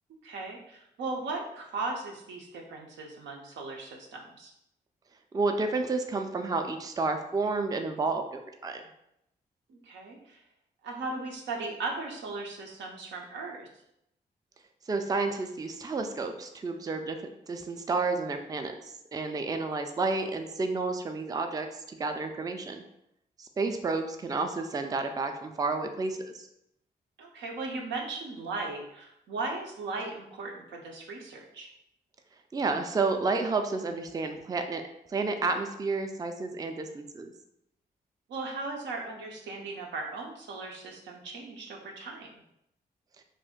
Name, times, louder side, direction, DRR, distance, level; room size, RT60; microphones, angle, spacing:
voice 1, 0.2-4.5 9.7-10.4 10.8-13.7 27.2-31.7 38.3-42.3, right 3 dB, 85° right, 1 dB, 0.6 m, -37 dB
voice 2, 5.3-8.8 14.9-17.2 17.5-18.7 19.1-22.8 23.4-26.5 32.5-34.8 35.1-37.3, right 3 dB, 20° right, 6 dB, 0.3 m, -30 dB
2.5 x 2.1 x 3.5 m, 0.80 s
supercardioid pair, 50°, 18 cm